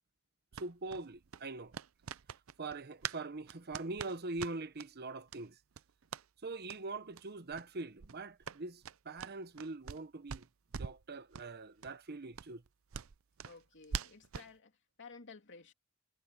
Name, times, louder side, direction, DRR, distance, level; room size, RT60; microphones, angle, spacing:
voice 1, 0.5-1.7 2.6-5.6 6.4-10.5 10.8-12.6, right 3 dB, 50° right, 1.1 m, -43 dB
sound 1, 0.5-3.2 3.5-4.9 5.3-5.4 5.7-6.3 6.6-6.8 7.1-7.2 7.5-7.7 8.0-10.0 10.3-11.0 11.3-11.5 11.8-11.9 12.3-14.5, right 7 dB, 75° right, 0.6 m, -44 dB
voice 2, 13.4-15.7, left 4 dB, 60° left, 3.1 m, -54 dB
head